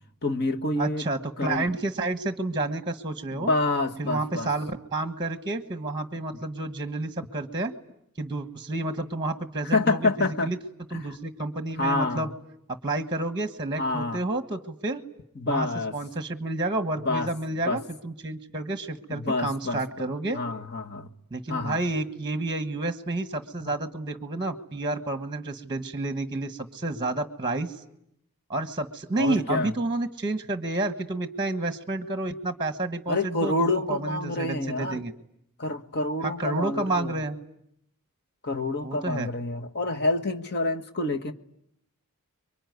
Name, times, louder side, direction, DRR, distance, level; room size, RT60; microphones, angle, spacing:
voice 1, 0.2-1.1 1.4-1.7 3.3-4.5 9.6-10.5 11.0-11.2 11.8-12.3 13.8-14.2 15.4-16.0 17.0-17.3 17.7-17.8 19.1-19.8 20.3-21.1 21.5-21.8 29.1-29.7 33.1-35.0 35.6-37.2 38.4-41.3, left 2 dB, 50° left, 1.6 m, -27 dB
voice 2, 0.8-3.5 4.0-7.7 8.2-10.6 10.9-12.3 12.8-15.0 15.4-15.7 15.9-20.4 21.3-27.8 28.5-35.1 36.2-37.4 38.8-39.3, right 2 dB, 20° right, 1.4 m, -30 dB
26.5 x 23.5 x 9.5 m
head